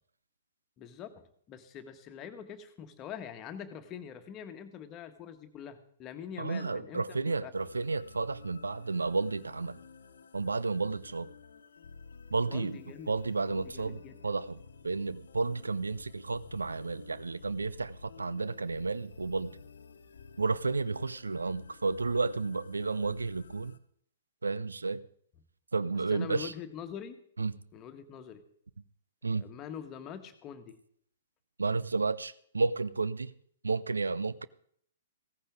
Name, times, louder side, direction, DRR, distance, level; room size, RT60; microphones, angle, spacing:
voice 1, 0.8-7.5 12.5-13.1 13.5-14.2 26.1-27.2 27.7-28.4 29.4-30.8, left 8 dB, 25° left, 1.5 m, -44 dB
voice 2, 6.4-9.8 10.3-11.3 12.3-12.8 13.1-19.5 20.4-23.7 24.4-25.0 25.7-26.5 27.4-27.5 29.2-29.5 31.6-33.3 33.6-34.5, right 3 dB, 80° right, 0.6 m, -32 dB
sound 1, 7.6-23.8, left 5 dB, 65° left, 1.1 m, -53 dB
16.0 x 14.5 x 3.7 m
figure-of-eight pair, 115°, 0 cm